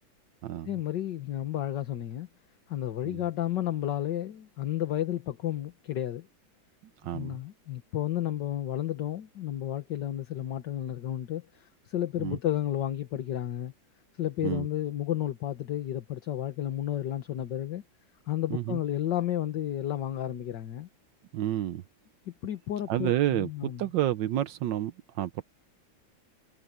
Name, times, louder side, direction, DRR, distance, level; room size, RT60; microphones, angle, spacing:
voice 1, 0.7-2.3 2.7-6.3 7.1-13.7 14.2-17.8 18.3-20.9 22.4-23.8, left 12 dB, 65° left, 1.9 m, -32 dB
voice 2, 7.0-7.4 12.2-12.4 14.4-14.7 18.5-18.8 21.3-21.8 22.9-25.4, right 13 dB, 75° right, 1.4 m, -30 dB
omnidirectional pair, 2.1 m